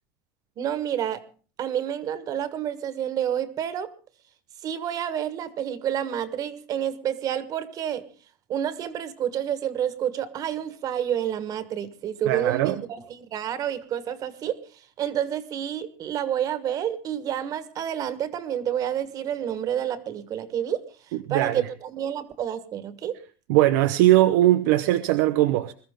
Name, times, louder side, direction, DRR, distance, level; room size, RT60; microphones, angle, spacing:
voice 1, 0.6-1.2 1.6-3.9 4.6-8.0 8.5-14.6 15.0-20.8 21.3-23.2, right 10 dB, 40° right, 1.4 m, -29 dB
voice 2, 12.3-12.8 21.3-21.6 23.5-25.7, right 15 dB, 80° right, 0.8 m, -20 dB
21.5 x 13.5 x 3.7 m
cardioid pair, 145°, 10 cm